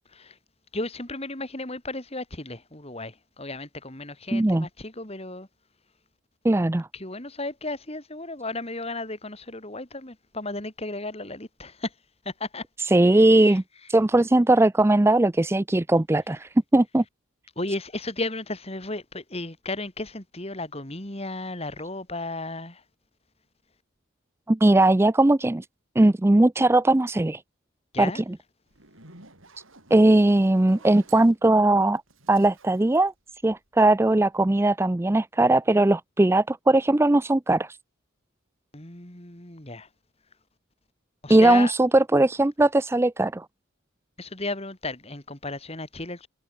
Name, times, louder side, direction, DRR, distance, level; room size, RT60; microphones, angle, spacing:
voice 1, 0.7-5.5 6.9-11.9 12.2-12.6 13.0-13.6 17.6-22.8 27.9-28.2 38.7-39.9 41.2-41.7 44.2-46.3, left 2 dB, 30° left, 3.3 m, -34 dB
voice 2, 4.3-4.7 6.4-6.9 12.9-13.6 13.9-17.0 24.5-25.6 26.0-27.4 28.0-28.2 29.9-32.0 32.3-33.1 33.4-37.8 41.3-43.5, right 2 dB, 10° right, 0.4 m, -19 dB
Zipper (clothing), 28.7-33.9, right 3 dB, 75° right, 7.7 m, -53 dB
head